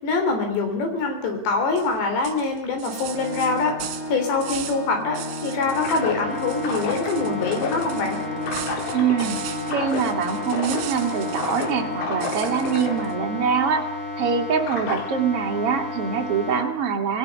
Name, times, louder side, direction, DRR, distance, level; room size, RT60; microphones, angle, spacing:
voice 1, 0.0-8.2, left 3 dB, 65° left, 5 dB, 5.6 m, -24 dB
sound 1, 1.8-1.9 2.2-4.9 5.1-6.1 6.4-11.8 12.2-13.1, right 11 dB, 70° right, 3.3 m, -38 dB
Organ, 2.9-13.7, left 1 dB, 15° left, 7.3 m, -34 dB
sound 2, 5.7-16.6, left 3 dB, 80° left, 6.3 m, -31 dB
voice 2, 8.9-9.4 9.7-13.9 14.1-17.2, right 6 dB, 50° right, 3 dB, 1.9 m, -24 dB
27.0 x 20.5 x 5.4 m, 0.87 s
omnidirectional pair, 5.5 m